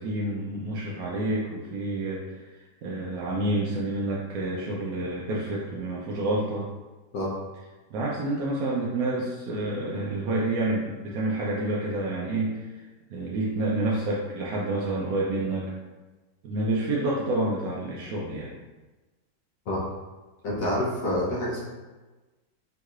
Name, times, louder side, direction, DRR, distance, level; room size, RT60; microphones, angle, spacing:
voice 1, 0.0-2.5 2.8-6.6 7.9-12.8 13.1-15.7 16.4-18.5, right 2 dB, 70° right, -5 dB, 0.9 m, -28 dB
voice 2, 20.4-21.6, left 1 dB, 60° left, -6 dB, 1.1 m, -27 dB
3.6 x 2.9 x 2.4 m, 1.2 s
omnidirectional pair, 1.9 m